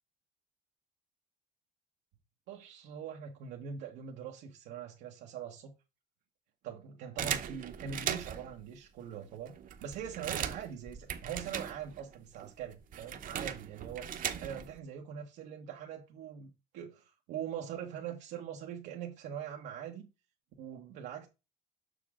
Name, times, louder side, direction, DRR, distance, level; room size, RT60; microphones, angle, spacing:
voice 1, 2.5-5.7 6.6-14.1 14.4-20.1 20.6-21.3, right 8 dB, 90° right, 1.1 m, -42 dB
sound 1, 7.2-8.5 9.2-9.3 9.5-12.1 12.4-14.8, right 9 dB, 55° right, 0.9 m, -38 dB
6.9 x 6.0 x 3.6 m
cardioid pair, 110°, 17 cm